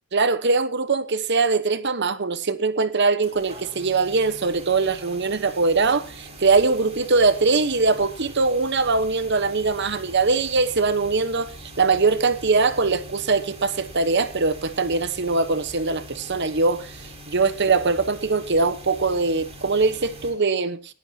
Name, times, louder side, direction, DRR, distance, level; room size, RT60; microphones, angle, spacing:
voice 1, 0.1-17.0 17.3-20.9, right 4 dB, 50° right, 1.1 m, -22 dB
sound 1, 3.2-20.3, right 1 dB, 30° right, 4.4 m, -43 dB
19.5 x 14.0 x 2.9 m
head